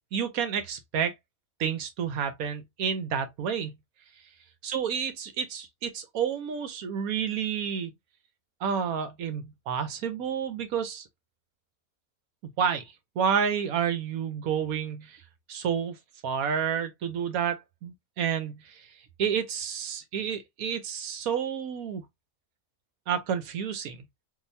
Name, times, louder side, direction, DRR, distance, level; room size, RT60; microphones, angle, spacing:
voice 1, 0.1-1.1 1.6-3.8 4.6-7.9 8.6-11.1 12.4-12.8 13.2-15.2 15.5-16.0 16.2-18.9 19.2-22.0 23.1-24.0, right 7 dB, 75° right, 1.2 m, -30 dB
3.8 x 2.7 x 2.6 m
omnidirectional pair, 1.5 m